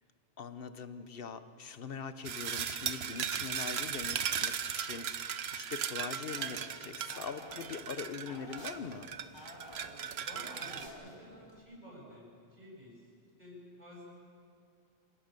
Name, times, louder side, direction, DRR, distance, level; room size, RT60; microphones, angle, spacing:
voice 1, 0.4-9.1, left 6 dB, 65° left, 11 dB, 1.2 m, -42 dB
sound 1, 2.2-10.9, right 8 dB, 85° right, 1.1 m, -37 dB
sound 2, 6.4-11.6, equal, 25° left, 2.7 m, -51 dB
voice 2, 10.2-13.1 13.4-14.0, equal, 45° right, -5 dB, 7.8 m, -51 dB
27.5 x 17.0 x 6.8 m, 2.6 s
omnidirectional pair, 1.0 m